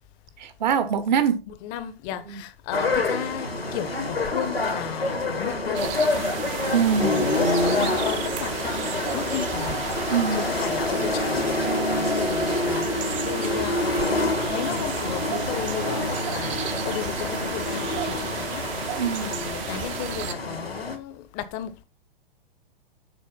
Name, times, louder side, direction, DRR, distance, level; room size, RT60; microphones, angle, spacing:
voice 1, 0.4-1.4 2.2-2.4 6.7-7.1 10.1-10.5 19.0-19.3, right 7 dB, 50° right, 1.1 m, -23 dB
voice 2, 1.6-6.3 7.1-8.7 9.1-9.8 10.3-16.5 16.8-18.7 19.2-21.8, left 10 dB, 30° left, 0.8 m, -34 dB
sound 1, 2.7-21.0, left 2 dB, 85° left, 1.7 m, -27 dB
sound 2, 5.7-20.3, right 11 dB, 35° right, 0.7 m, -34 dB
7.0 x 4.5 x 5.6 m
figure-of-eight pair, 105°, 29 cm